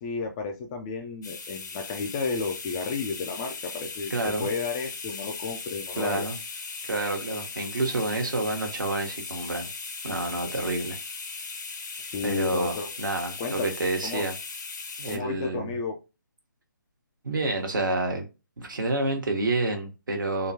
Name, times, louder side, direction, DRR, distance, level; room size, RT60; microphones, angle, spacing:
voice 1, 0.0-4.1 4.4-6.2 12.0-12.9 13.4-13.7 14.0-14.2 15.1-16.0, left 4 dB, 15° left, 0.3 m, -32 dB
sound 1, 1.2-15.2, left 4 dB, 60° left, 0.8 m, -38 dB
voice 2, 4.1-4.5 6.0-6.4 6.9-9.7 10.0-11.0 12.2-14.3 15.0-15.8 17.2-18.3 18.6-20.5, right 2 dB, 70° right, 1.0 m, -28 dB
3.7 x 2.2 x 2.6 m
figure-of-eight pair, 150°, 11 cm